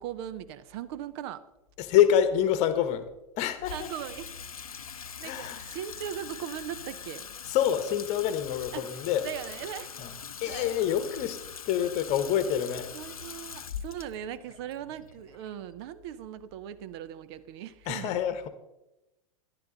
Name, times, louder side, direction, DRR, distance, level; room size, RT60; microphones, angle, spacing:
voice 1, 0.0-1.4 3.7-4.3 5.0-7.3 8.7-9.0 9.2-10.0 10.5-10.7 12.9-18.2, right 10 dB, 45° right, 14 dB, 0.6 m, -39 dB
voice 2, 1.8-3.1 3.4-3.9 5.2-5.7 7.4-9.3 10.0-10.1 10.4-12.9 17.9-18.5, left 10 dB, 40° left, 11 dB, 1.1 m, -26 dB
Water tap faucet / Sink (filling or washing), 3.6-16.0, left 7 dB, 80° left, 0.6 m, -43 dB
12.0 x 10.5 x 3.8 m, 0.94 s
figure-of-eight pair, 95°, 18 cm